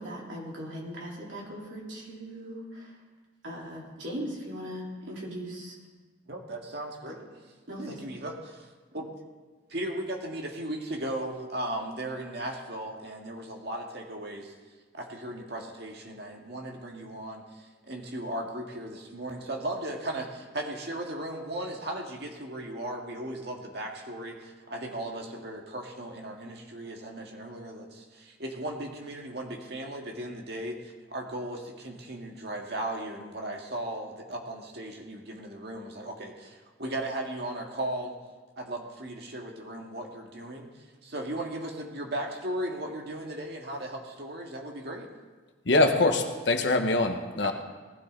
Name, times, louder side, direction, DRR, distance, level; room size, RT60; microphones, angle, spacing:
voice 1, 0.0-3.0 3.4-5.8 7.1-7.2 7.7-8.0, equal, 75° right, -4 dB, 3.9 m, -39 dB
voice 2, 6.3-7.2 7.9-9.2 9.7-14.5 14.9-38.1 38.6-45.1 47.4-47.5, right 1 dB, 55° right, 1 dB, 2.0 m, -37 dB
voice 3, 45.6-47.5, left 2 dB, 65° left, 5 dB, 1.3 m, -23 dB
19.0 x 13.5 x 4.0 m, 1.3 s
head